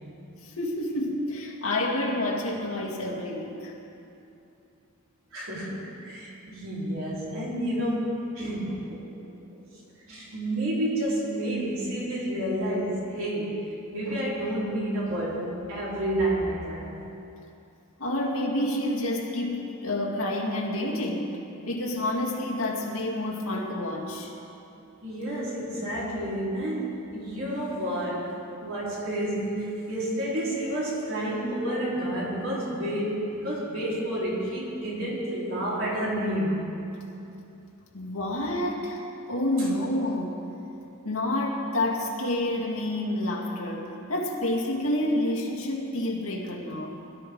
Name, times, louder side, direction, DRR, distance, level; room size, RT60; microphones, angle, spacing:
voice 1, 0.4-3.7 18.0-21.4 21.7-24.3 37.9-39.0 39.3-40.4 41.0-47.0, left 1 dB, 90° left, -1 dB, 2.3 m, -29 dB
voice 2, 5.3-9.2 9.5-9.6 10.1-13.6 13.9-16.9 25.0-28.3 28.6-36.6 39.6-39.7, right 1 dB, 75° right, -6 dB, 4.4 m, -30 dB
21.5 x 13.0 x 3.9 m, 2.8 s
head